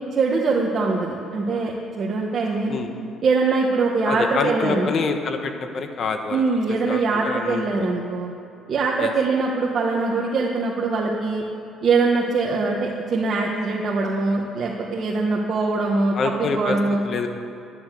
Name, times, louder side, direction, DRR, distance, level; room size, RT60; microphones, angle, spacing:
voice 1, 0.1-2.8 3.2-4.9 6.3-8.3 8.7-11.4 11.8-17.0, right 3 dB, 50° right, -2 dB, 1.5 m, -22 dB
voice 2, 4.0-6.4 6.7-7.9 9.0-9.1 16.1-16.8 17.0-17.3, left 5 dB, 55° left, 6 dB, 1.4 m, -26 dB
11.5 x 11.0 x 7.7 m, 2.6 s
cardioid pair, 85°, 0 cm